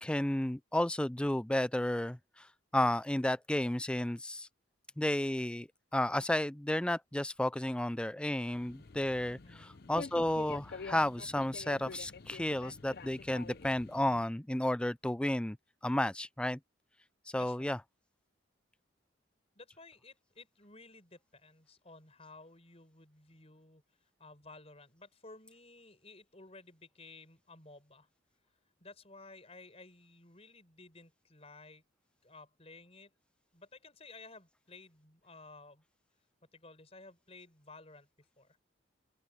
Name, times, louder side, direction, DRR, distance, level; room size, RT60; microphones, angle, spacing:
voice 1, 0.0-2.5 2.7-4.5 5.0-5.7 5.9-15.6 15.8-16.6 17.3-17.8, left 1 dB, 5° left, 0.3 m, -32 dB
sound 1, 8.5-14.2, left 4 dB, 55° left, 0.7 m, -48 dB
voice 2, 17.3-17.7 19.5-23.8 24.2-28.1 28.8-31.8 32.2-33.1 33.5-35.8 36.5-38.1 38.4-38.6, left 3 dB, 30° left, 5.7 m, -55 dB
open air
head